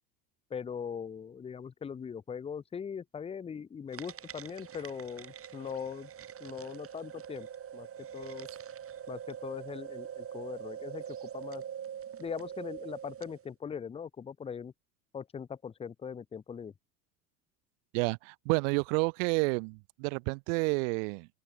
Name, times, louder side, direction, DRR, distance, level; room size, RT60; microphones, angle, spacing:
voice 1, 0.5-6.1 6.4-7.9 8.1-8.5 9.1-11.6 12.2-14.7 15.1-16.7, left 7 dB, 10° left, 0.7 m, -40 dB
sound 1, 3.9-13.4, right 9 dB, 25° right, 2.6 m, -44 dB
voice 2, 17.9-21.3, right 34 dB, 50° right, 1.2 m, -30 dB
open air
figure-of-eight pair, 75°, 48 cm